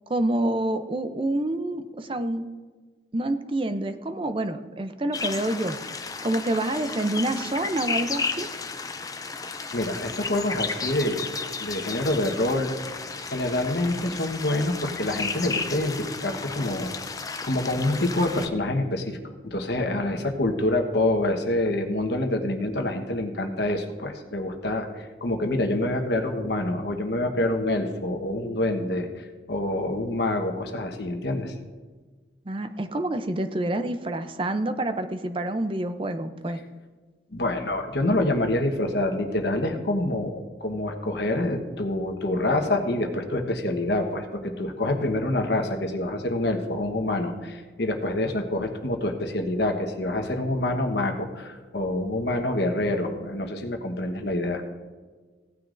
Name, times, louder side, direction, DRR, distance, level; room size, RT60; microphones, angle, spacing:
voice 1, 0.1-2.5 3.1-5.8 6.2-8.5 32.5-36.6, right 1 dB, 30° right, 9 dB, 0.5 m, -27 dB
sound 1, 5.1-18.5, left 4 dB, 20° left, 0.4 m, -33 dB
voice 2, 9.7-12.7 13.3-19.2 19.4-31.5 37.3-54.6, left 1 dB, 65° left, 5 dB, 1.1 m, -26 dB
16.5 x 9.5 x 2.6 m, 1.4 s
head